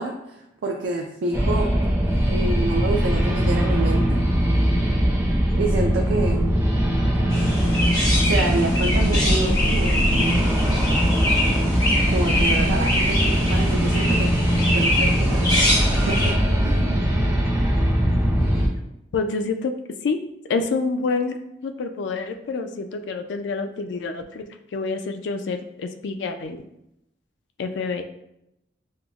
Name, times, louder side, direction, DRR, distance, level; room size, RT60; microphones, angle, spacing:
voice 1, 0.0-1.7 2.3-4.2 5.6-6.5 8.3-10.4 12.1-14.3 14.7-15.5 15.9-16.3 16.6-17.1, right 2 dB, 80° right, 1 dB, 0.4 m, -28 dB
sound 1, 1.3-18.7, equal, 15° right, 0.5 m, -21 dB
Chirp tweet, 7.3-16.3, left 1 dB, 20° left, 0.8 m, -24 dB
voice 2, 19.1-19.7 20.0-20.2 20.5-24.4 24.7-26.6 27.6-28.0, left 4 dB, 75° left, 7 dB, 0.3 m, -27 dB
5.3 x 2.0 x 2.3 m, 0.84 s
head